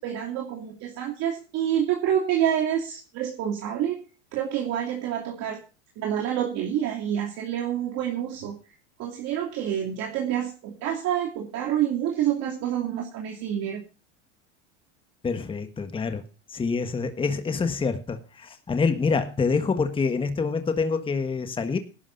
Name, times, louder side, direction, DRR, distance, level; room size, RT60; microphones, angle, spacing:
voice 1, 0.0-4.0 4.3-5.6 6.0-8.6 9.0-13.8, right 10 dB, 45° right, -1 dB, 2.8 m, -27 dB
voice 2, 15.2-16.2 16.5-21.8, left 4 dB, 15° left, 9 dB, 1.4 m, -26 dB
19.5 x 11.5 x 2.6 m, 0.34 s
supercardioid pair, 120°, 36 cm